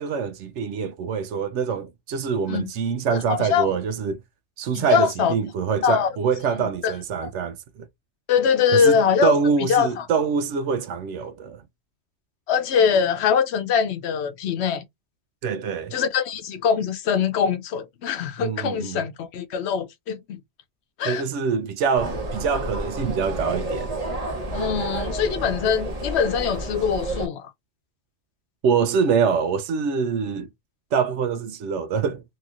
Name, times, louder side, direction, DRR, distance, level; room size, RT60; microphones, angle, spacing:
voice 1, 0.0-4.2 4.6-7.6 8.7-11.6 15.4-15.9 18.4-19.0 21.0-23.9 28.6-30.5 30.9-32.2, right 6 dB, 75° right, 0.9 m, -25 dB
voice 2, 3.1-3.7 4.7-5.3 5.8-6.1 6.6-6.9 8.3-9.3 9.7-10.0 12.5-14.8 15.9-20.4 21.0-21.2 24.5-27.5, left 7 dB, 70° left, 0.8 m, -22 dB
sound 1, 21.9-27.3, right 2 dB, 35° right, 0.9 m, -30 dB
2.9 x 2.9 x 2.4 m
omnidirectional pair, 1.2 m